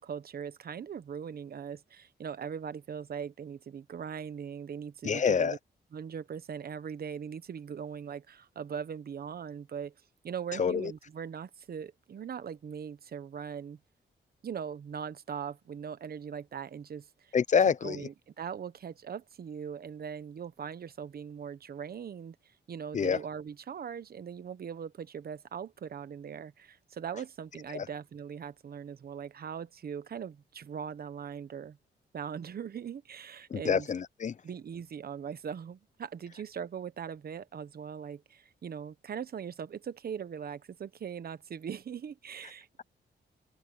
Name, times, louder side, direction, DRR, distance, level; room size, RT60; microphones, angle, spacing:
voice 1, 0.0-5.6 5.9-9.9 10.2-13.8 14.4-17.3 17.6-31.8 32.1-33.9 34.4-42.7, right 7 dB, 55° right, 1.1 m, -40 dB
voice 2, 5.0-5.6 10.6-10.9 17.3-18.0 22.9-23.2 27.7-27.9 33.5-34.3, left 6 dB, 40° left, 0.6 m, -27 dB
wide cardioid pair, 120°, 18 cm